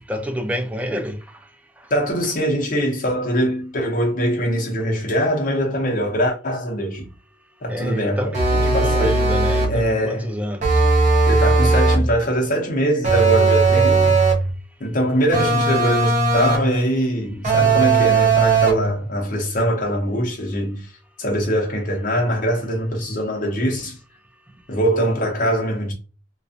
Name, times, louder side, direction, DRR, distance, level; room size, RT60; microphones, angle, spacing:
voice 1, 0.1-1.2 7.7-10.8, equal, 10° right, 0.3 m, -28 dB
voice 2, 1.9-7.1 7.6-8.3 8.7-9.3 9.7-10.3 11.3-14.2 14.8-20.9 21.2-24.0 24.7-25.9, equal, 45° left, 0.7 m, -22 dB
sound 1, 8.3-9.8 10.6-12.1 13.0-14.5 15.3-16.8 17.4-18.9, right 3 dB, 40° right, 0.7 m, -17 dB
2.4 x 2.2 x 2.6 m
head